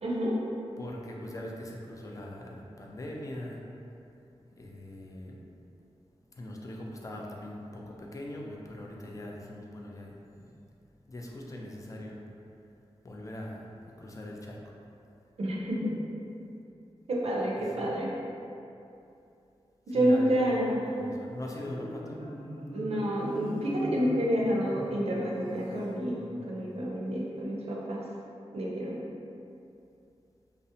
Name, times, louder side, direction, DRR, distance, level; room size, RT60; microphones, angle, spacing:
voice 1, 0.0-0.4 15.4-16.0 17.1-18.1 19.9-21.2 22.7-28.0 28.5-29.0, equal, 70° right, -4 dB, 0.5 m, -29 dB
voice 2, 0.8-3.6 4.5-5.5 6.3-10.5 11.1-12.2 13.0-14.6 17.6-17.9 19.9-22.2, left 1 dB, 30° left, -2 dB, 0.3 m, -41 dB
Marimba xylophone, 21.5-26.6, equal, 80° left, 0.8 m, -42 dB
2.6 x 2.0 x 2.6 m, 2.7 s
wide cardioid pair, 75°, 11 cm